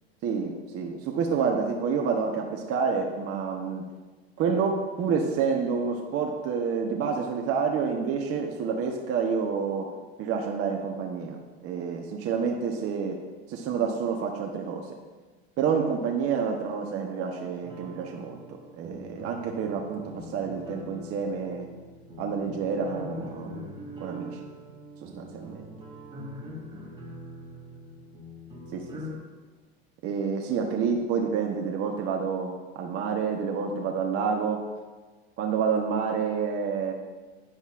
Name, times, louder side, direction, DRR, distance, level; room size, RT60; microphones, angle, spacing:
voice 1, 0.2-3.9 4.4-9.9 10.2-13.2 13.5-14.9 15.6-18.4 18.8-21.7 22.2-23.6 24.0-24.4 25.0-25.7 28.7-29.0 30.0-34.7 35.4-36.9, right 6 dB, 45° right, 1 dB, 1.1 m, -28 dB
sound 1, 17.6-29.2, equal, 15° right, 2.5 m, -43 dB
10.5 x 10.0 x 2.5 m, 1.3 s
hypercardioid pair, 100°, 32 cm